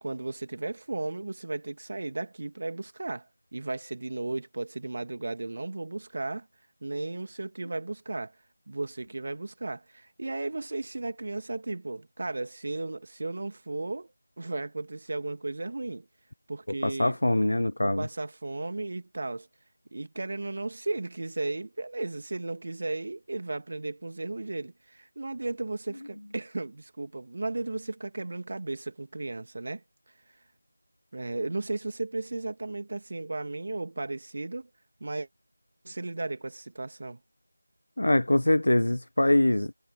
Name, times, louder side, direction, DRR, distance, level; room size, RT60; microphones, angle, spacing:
voice 1, 0.0-6.5 6.8-8.3 8.7-16.1 16.5-17.2 17.8-19.5 19.9-29.8 31.1-34.7 35.0-35.3 35.8-37.2, right 2 dB, 40° right, 2.2 m, -35 dB
voice 2, 16.8-18.1 38.0-39.7, left 1 dB, 60° left, 0.4 m, -23 dB
figure-of-eight pair, 170°, 0 cm